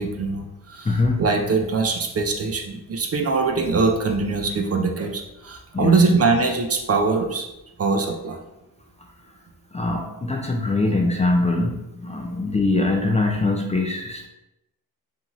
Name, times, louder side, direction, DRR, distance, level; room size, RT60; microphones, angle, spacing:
voice 1, 0.0-7.5 7.8-8.4, right 4 dB, 40° right, 3 dB, 0.4 m, -22 dB
voice 2, 0.9-1.2 5.7-6.0 9.7-14.3, left 2 dB, 20° left, 1 dB, 0.4 m, -22 dB
2.7 x 2.3 x 3.0 m, 0.92 s
cardioid pair, 60°, 37 cm